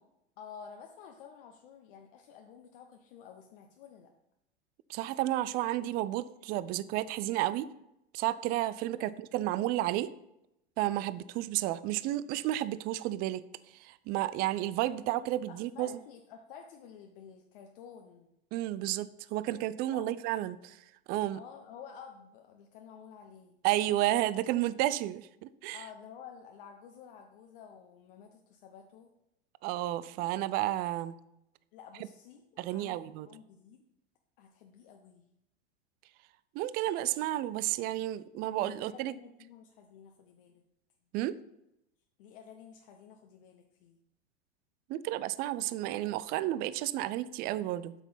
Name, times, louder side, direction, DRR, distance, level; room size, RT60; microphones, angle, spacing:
voice 1, 0.4-4.1 9.0-9.5 15.2-15.3 15.5-18.3 19.9-20.1 21.3-23.6 25.7-29.1 31.7-33.8 34.4-35.3 38.6-40.6 42.2-44.0, left 7 dB, 55° left, 3 dB, 1.0 m, -51 dB
voice 2, 4.9-7.7 8.1-10.1 10.8-13.4 13.8-15.9 18.5-20.8 21.1-21.4 23.6-25.8 29.6-31.1 32.6-33.3 36.5-39.1 41.1-41.4 44.9-47.9, right 14 dB, 30° right, 17 dB, 0.4 m, -32 dB
8.1 x 6.0 x 5.6 m, 0.85 s
figure-of-eight pair, 90°, 32 cm